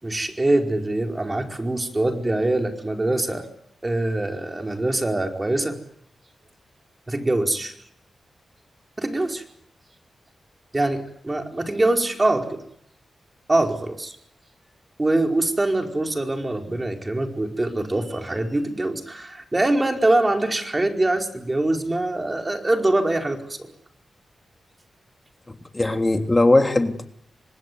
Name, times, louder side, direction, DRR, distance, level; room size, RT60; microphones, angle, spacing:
voice 1, 0.0-3.5 3.8-5.8 7.1-7.7 9.0-9.4 10.7-12.6 13.5-14.2 15.0-23.7, right 2 dB, 25° right, 4 dB, 4.8 m, -23 dB
voice 2, 25.5-27.1, left 2 dB, 25° left, 6 dB, 3.2 m, -20 dB
25.5 x 19.5 x 9.5 m, 0.71 s
cardioid pair, 50°, 0 cm